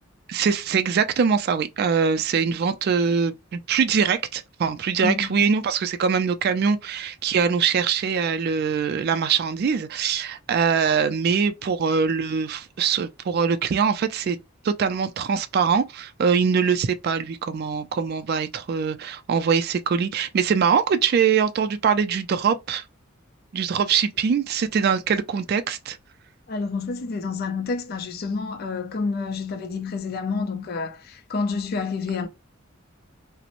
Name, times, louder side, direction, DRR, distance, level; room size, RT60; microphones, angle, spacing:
voice 1, 0.3-14.4 14.6-22.8 23.5-26.0, right 6 dB, 50° right, 0.3 m, -23 dB
voice 2, 5.0-5.5 26.5-32.3, left 4 dB, 50° left, 0.4 m, -29 dB
2.9 x 2.0 x 2.4 m
head